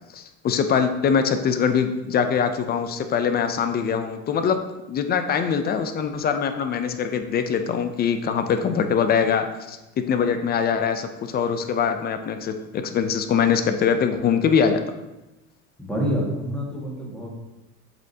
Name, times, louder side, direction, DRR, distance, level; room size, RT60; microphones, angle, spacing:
voice 1, 0.1-4.6 4.9-14.8, left 7 dB, 25° left, 8 dB, 0.4 m, -23 dB
voice 2, 15.8-17.3, equal, ahead, -5 dB, 1.8 m, -27 dB
7.5 x 5.3 x 2.8 m, 1.0 s
supercardioid pair, 120°, 42 cm